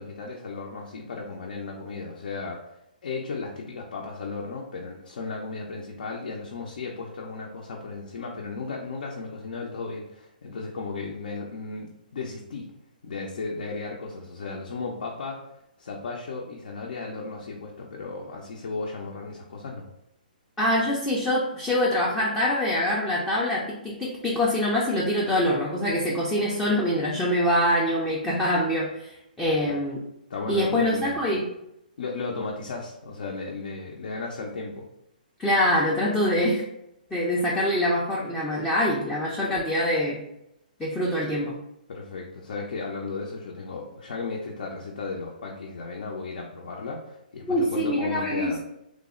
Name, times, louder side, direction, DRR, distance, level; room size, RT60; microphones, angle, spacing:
voice 1, 0.0-2.6 3.0-12.7 13.0-15.5 15.8-19.9 30.3-31.5 32.0-34.9 41.9-48.6, left 3 dB, 70° left, -2 dB, 0.6 m, -35 dB
voice 2, 20.6-30.0 30.5-31.4 35.4-36.6 37.1-40.2 40.8-41.6 47.4-48.5, left 1 dB, 5° left, -6 dB, 0.4 m, -24 dB
3.3 x 2.0 x 3.6 m, 0.81 s
hypercardioid pair, 150°, 5 cm